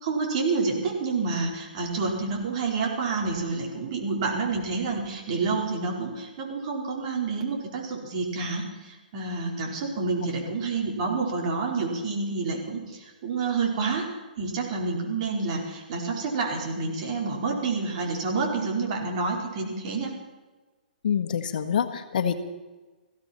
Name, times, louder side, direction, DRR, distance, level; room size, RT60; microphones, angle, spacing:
voice 1, 0.0-14.1 14.4-20.1, right 4 dB, 45° right, 0 dB, 4.5 m, -28 dB
voice 2, 21.0-22.4, left 8 dB, 60° left, 8 dB, 1.5 m, -26 dB
20.0 x 15.5 x 4.4 m, 1.2 s
hypercardioid pair, 145°, 5 cm